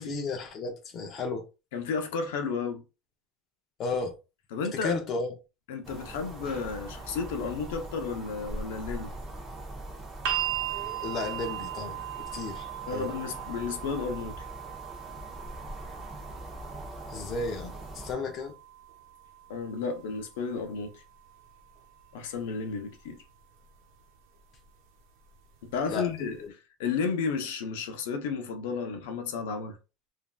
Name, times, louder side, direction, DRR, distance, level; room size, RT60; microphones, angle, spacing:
voice 1, 0.0-1.4 3.8-4.1 4.8-5.3 11.0-12.0 12.3-13.1 17.1-18.5 25.9-26.1 26.4-26.5, left 3 dB, 30° left, 0.5 m, -33 dB
voice 2, 1.7-2.8 4.5-5.0 5.7-9.1 12.9-14.5 19.5-21.0 22.1-23.2 25.6-26.4 26.8-29.8, left 5 dB, 80° left, 0.6 m, -32 dB
sound 1, 5.8-18.1, right 1 dB, 15° right, 0.8 m, -42 dB
sound 2, 10.2-22.3 23.4-23.5, right 12 dB, 70° right, 0.8 m, -39 dB
3.1 x 2.5 x 2.2 m
cardioid pair, 175°, 0 cm